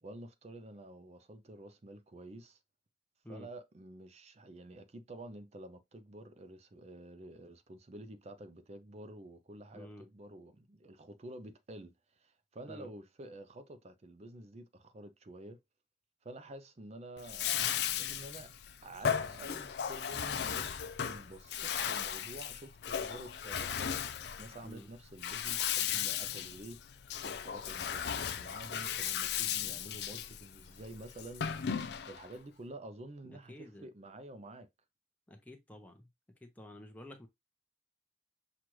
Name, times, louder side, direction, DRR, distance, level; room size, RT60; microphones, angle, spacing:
voice 1, 0.0-2.6 3.3-15.6 16.2-18.5 18.8-26.8 27.2-34.7, right 1 dB, 35° right, 0.5 m, -50 dB
voice 2, 9.7-10.0 12.7-12.9 24.6-24.9 33.2-33.9 35.3-36.1 36.4-37.3, equal, 10° left, 0.7 m, -50 dB
Bathtub (filling or washing), 17.2-32.3, left 8 dB, 60° left, 0.4 m, -36 dB
6.0 x 2.4 x 3.1 m
head